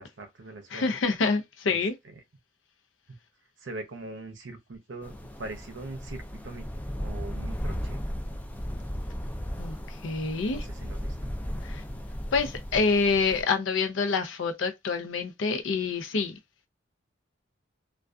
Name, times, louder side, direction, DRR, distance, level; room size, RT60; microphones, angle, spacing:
voice 1, 0.0-1.0 1.7-2.2 3.6-8.1 9.6-9.7 10.4-11.2, right 2 dB, 65° right, 0.6 m, -42 dB
voice 2, 0.7-1.9 9.6-10.6 11.6-11.8 12.3-16.3, left 4 dB, 75° left, 0.5 m, -27 dB
sound 1, 5.0-13.4, equal, 10° left, 0.3 m, -35 dB
2.5 x 2.3 x 2.2 m
head